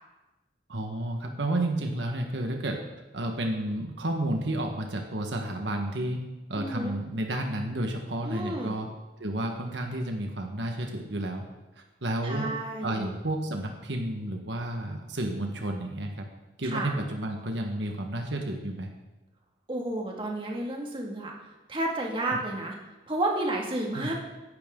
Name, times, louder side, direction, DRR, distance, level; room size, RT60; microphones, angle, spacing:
voice 1, 0.7-2.8 3.1-6.2 6.5-8.9 9.2-11.4 11.8-12.5 12.8-16.3 16.6-18.9 23.9-24.1, right 1 dB, 75° right, 3 dB, 1.5 m, -31 dB
voice 2, 6.6-6.9 8.2-8.8 12.2-13.1 16.7-16.9 19.7-21.3 21.7-22.7 23.1-24.1, right 1 dB, 30° right, -1 dB, 2.2 m, -31 dB
15.5 x 11.5 x 3.9 m, 1.1 s
head